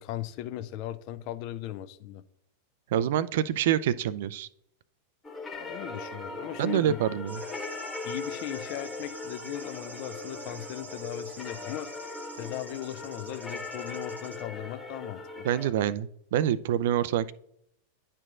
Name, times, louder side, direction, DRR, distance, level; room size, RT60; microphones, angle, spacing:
voice 1, 0.0-2.2 5.6-7.0 8.0-11.9 12.4-15.5, left 12 dB, 45° left, 12 dB, 0.5 m, -38 dB
voice 2, 2.9-4.5 6.6-7.4 15.4-17.3, right 10 dB, 55° right, 18 dB, 0.3 m, -26 dB
sound 1, 5.2-15.7, left 3 dB, 15° left, 1.0 m, -39 dB
sound 2, 7.3-14.4, right 4 dB, 75° right, 0.8 m, -48 dB
10.5 x 4.5 x 2.5 m, 0.71 s
figure-of-eight pair, 90°, 0 cm